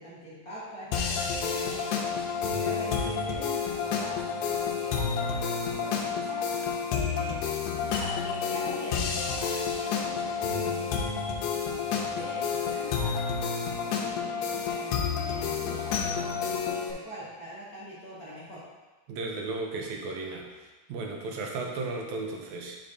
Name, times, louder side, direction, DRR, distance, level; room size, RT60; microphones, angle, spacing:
voice 1, 0.0-13.2 13.5-14.9 15.3-16.5 16.9-18.6, right 1 dB, 50° left, -10 dB, 1.1 m, -44 dB
sound 1, 0.9-16.9, left 6 dB, 75° left, 2.1 m, -30 dB
voice 2, 19.1-20.5 20.9-22.8, right 3 dB, 75° right, 2 dB, 1.8 m, -34 dB
8.8 x 5.0 x 2.6 m, 1.2 s
omnidirectional pair, 3.8 m